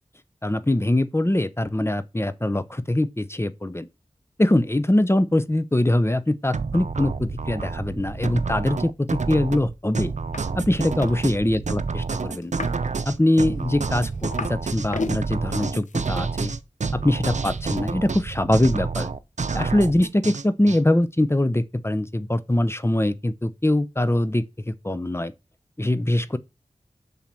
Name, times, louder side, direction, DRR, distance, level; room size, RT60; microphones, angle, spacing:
voice 1, 0.4-3.9 4.4-10.1 10.6-12.5 13.0-16.5 16.9-19.1 19.5-25.3 25.8-26.4, left 1 dB, 20° left, 0.8 m, -23 dB
sound 1, 6.5-20.8, right 4 dB, 75° right, 0.7 m, -29 dB
sound 2, 10.3-10.5 10.7-11.2 12.4-12.9 13.4-14.6 14.9-15.2 15.9-16.0, left 3 dB, 85° left, 0.8 m, -33 dB
7.2 x 5.8 x 7.6 m
wide cardioid pair, 45°, 12 cm